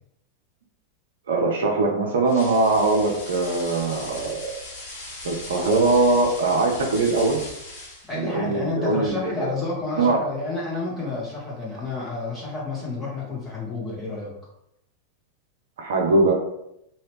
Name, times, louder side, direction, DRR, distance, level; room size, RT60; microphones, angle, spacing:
voice 1, 1.3-4.6 5.2-7.4 8.1-9.5 10.0-10.2 15.8-16.3, right 3 dB, 60° right, 1 dB, 0.6 m, -21 dB
sound 1, 2.3-8.2, left 2 dB, 55° left, 1.2 m, -38 dB
voice 2, 8.1-14.3, left 3 dB, 10° left, -7 dB, 1.4 m, -30 dB
2.8 x 2.7 x 3.2 m, 0.81 s
figure-of-eight pair, 90°, 0 cm